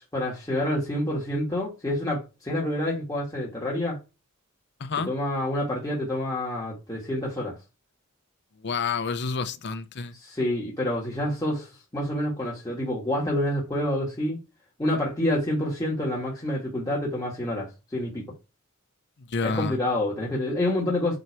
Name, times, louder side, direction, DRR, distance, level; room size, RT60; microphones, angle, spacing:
voice 1, 0.1-4.0 5.1-7.6 10.2-14.4 14.8-18.2 19.4-21.2, left 1 dB, 15° left, 1.7 m, -28 dB
voice 2, 4.8-5.1 8.6-10.1 19.3-19.8, left 5 dB, 55° left, 0.7 m, -29 dB
7.9 x 2.9 x 4.6 m
head